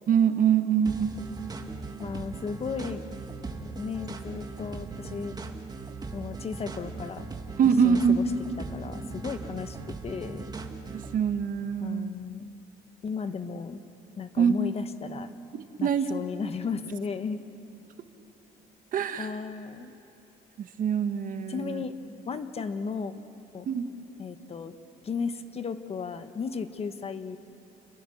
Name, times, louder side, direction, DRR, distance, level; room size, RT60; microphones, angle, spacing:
voice 1, 0.1-1.1 7.6-8.2 10.9-12.1 14.4-14.5 15.8-16.1 18.9-19.3 20.6-21.8 23.7-23.8, right 7 dB, 55° right, 8 dB, 1.5 m, -24 dB
sound 1, 0.8-11.2, right 3 dB, 25° right, 1.8 m, -39 dB
voice 2, 2.0-3.0 3.4-5.4 6.1-7.3 7.8-8.3 8.6-10.4 11.8-12.5 13.0-13.8 14.2-15.4 15.8-17.4 19.2-19.9 21.5-22.0 22.2-23.1 23.5-23.7 24.2-24.7 25.0-27.4, left 5 dB, 35° left, 10 dB, 1.2 m, -35 dB
29.5 x 21.5 x 7.2 m, 2.8 s
cardioid pair, 110°, 17 cm